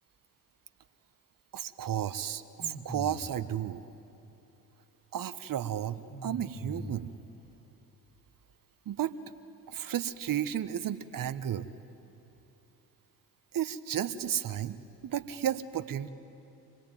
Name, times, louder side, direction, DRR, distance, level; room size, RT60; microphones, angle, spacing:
voice 1, 1.5-3.8 5.1-7.1 8.9-9.1 9.7-11.7 13.5-14.8 15.0-16.1, right 10 dB, 45° right, 14 dB, 1.2 m, -33 dB
sound 1, 2.6-3.5 6.1-7.3, equal, 15° left, 2.1 m, -42 dB
26.0 x 20.0 x 9.2 m, 2.9 s
hypercardioid pair, 50°, 48 cm